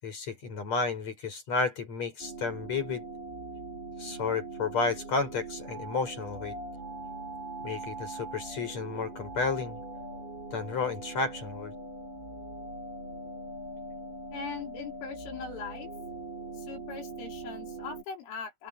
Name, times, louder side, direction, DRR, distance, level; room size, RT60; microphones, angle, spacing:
voice 1, 0.0-3.0 4.0-6.6 7.6-9.8 10.5-11.7, left 4 dB, 35° left, 6.2 m, -32 dB
sound 1, 2.2-18.0, right 2 dB, 50° right, 7.7 m, -41 dB
voice 2, 14.3-15.9 16.6-18.7, left 5 dB, 75° left, 6.8 m, -40 dB
open air
omnidirectional pair, 5.6 m